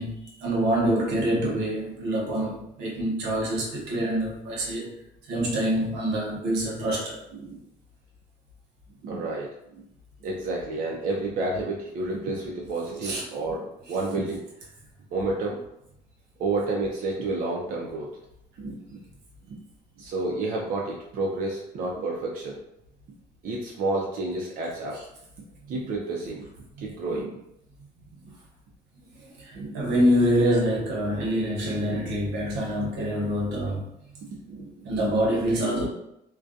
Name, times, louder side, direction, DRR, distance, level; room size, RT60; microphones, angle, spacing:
voice 1, 0.0-4.9 5.2-7.2 13.0-13.2 24.9-25.0 29.4-33.9 34.8-35.9, equal, 85° right, -2 dB, 0.9 m, -26 dB
voice 2, 9.0-9.5 10.2-14.4 15.1-15.6 16.4-18.1 18.6-19.0 19.4-19.6 20.0-22.6 23.4-25.0 25.7-26.5 26.8-27.4 29.5-29.8 31.2-31.3 31.8-32.1 34.5-35.1, right 2 dB, 55° right, -2 dB, 0.5 m, -30 dB
2.3 x 2.2 x 2.6 m, 0.79 s
cardioid pair, 110°, 17 cm